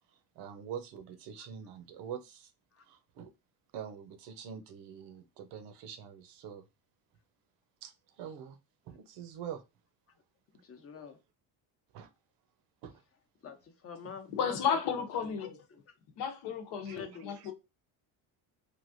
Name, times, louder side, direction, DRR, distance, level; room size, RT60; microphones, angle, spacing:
voice 1, 0.4-2.4 3.2-3.3 3.7-6.6 7.8-7.9 8.2-8.5 8.9-9.6 11.9-12.1 12.8-12.9 16.9-17.0, right 8 dB, 75° right, 0.8 m, -44 dB
voice 2, 10.6-11.2 13.4-14.8 15.2-15.8 16.8-17.5, left 6 dB, 35° left, 0.7 m, -46 dB
voice 3, 14.4-15.5 16.2-17.5, left 7 dB, 70° left, 0.9 m, -33 dB
3.3 x 2.5 x 2.5 m
cardioid pair, 115°, 42 cm